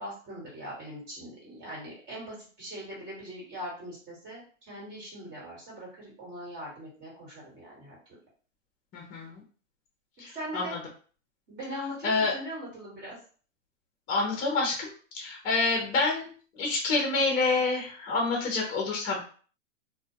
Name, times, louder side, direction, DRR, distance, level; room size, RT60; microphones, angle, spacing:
voice 1, 0.0-8.0 10.3-10.7 11.5-13.2, equal, 25° right, -4 dB, 1.4 m, -41 dB
voice 2, 8.9-9.4 10.2-10.8 12.0-12.3 14.1-19.2, left 3 dB, 20° left, -1 dB, 0.7 m, -28 dB
2.4 x 2.2 x 2.7 m, 0.41 s
hypercardioid pair, 135°, 39 cm